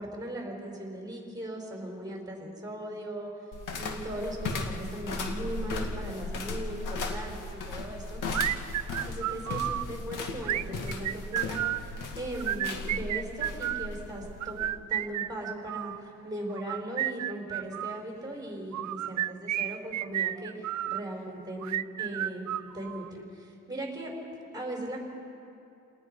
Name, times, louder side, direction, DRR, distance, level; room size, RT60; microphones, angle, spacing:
voice 1, 0.0-3.3 3.8-8.2 9.0-22.5 22.7-24.2 24.5-25.0, right 1 dB, 10° right, 0 dB, 5.2 m, -38 dB
sound 1, 3.5-14.8, left 3 dB, 75° left, 2.1 m, -36 dB
sound 2, 8.3-9.8 10.4-11.9 12.3-13.9 14.4-16.0 16.6-18.0 18.7-21.0 21.6-23.1, right 13 dB, 65° right, 0.5 m, -32 dB
29.5 x 19.0 x 5.6 m, 2.7 s
cardioid pair, 115°, 31 cm